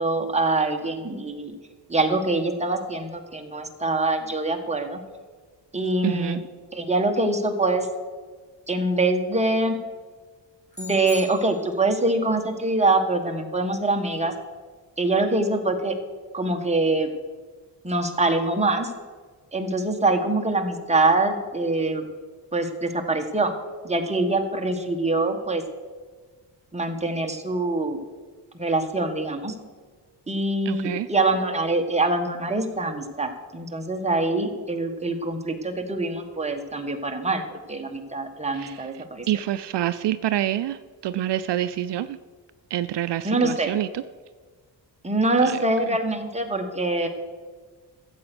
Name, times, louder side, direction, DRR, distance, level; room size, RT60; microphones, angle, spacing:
voice 1, 0.0-1.5 1.9-5.0 5.7-6.4 6.7-7.9 8.7-9.8 10.8-14.3 15.0-15.9 16.3-17.1 17.8-18.9 19.5-22.0 22.5-23.5 23.8-25.6 26.7-28.0 28.6-29.5 30.3-39.3 43.2-43.7 45.0-47.1, right 2 dB, 15° right, 4 dB, 1.4 m, -24 dB
voice 2, 6.0-6.4 30.7-31.1 38.6-38.8 39.3-40.8 41.0-42.2 42.7-44.0 45.4-45.5, right 12 dB, 70° right, 13 dB, 0.5 m, -26 dB
sound 1, 10.7-12.1, left 2 dB, 15° left, 4.2 m, -41 dB
14.0 x 8.1 x 6.0 m, 1.4 s
cardioid pair, 105°, 43 cm